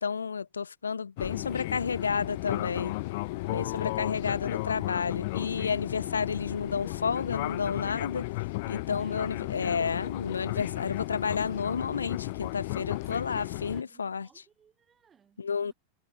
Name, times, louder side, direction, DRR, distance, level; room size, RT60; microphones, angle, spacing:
voice 1, 0.0-2.9 3.5-8.3 8.7-14.3 15.4-15.7, left 5 dB, 75° left, 0.7 m, -31 dB
Fixed-wing aircraft airplane, 1.2-13.8, left 22 dB, 50° left, 1.3 m, -34 dB
voice 2, 1.8-2.6 3.4-4.3 9.0-9.6 12.7-15.7, right 7 dB, 20° right, 7.6 m, -63 dB
figure-of-eight pair, 90°, 0 cm